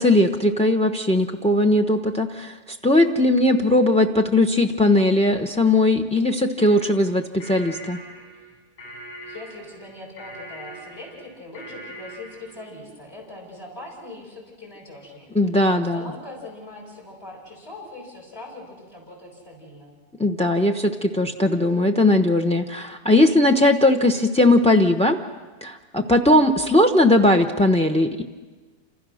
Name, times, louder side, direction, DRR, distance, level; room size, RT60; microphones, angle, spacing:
voice 1, 0.0-8.0 15.3-16.0 20.2-25.2 25.6-28.2, left 1 dB, 5° left, 5 dB, 0.6 m, -19 dB
sound 1, 6.6-12.6, right 1 dB, 25° left, 7.6 m, -42 dB
voice 2, 9.2-19.9, left 2 dB, 40° left, -1 dB, 6.8 m, -41 dB
29.0 x 27.0 x 6.4 m, 1.3 s
omnidirectional pair, 1.7 m